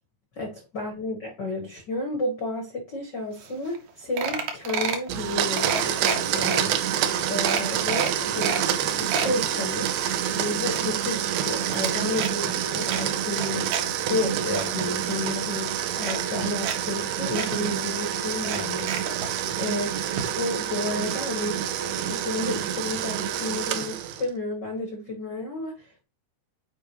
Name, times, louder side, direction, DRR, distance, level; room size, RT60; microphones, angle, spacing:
voice 1, 0.3-6.9 7.3-8.6 9.0-10.0 10.3-21.6 21.9-26.0, left 2 dB, 85° left, 0.9 m, -32 dB
sound 1, 3.5-3.6 3.8-3.9 4.2-5.1 5.6-6.6 7.1-7.2 7.5-8.6 8.9-9.3 9.8-11.4 11.6-12.3 12.9-13.8 14.2-14.7 15.5-15.6 16.0-16.8 17.0-17.1 17.3-17.5 18.4-19.3 20.2-20.3 20.6-20.7, right 6 dB, 70° right, 2.6 m, -30 dB
Domestic sounds home sounds, 5.1-24.3, right 10 dB, 85° right, 2.6 m, -27 dB
8.4 x 4.7 x 3.0 m
omnidirectional pair, 4.4 m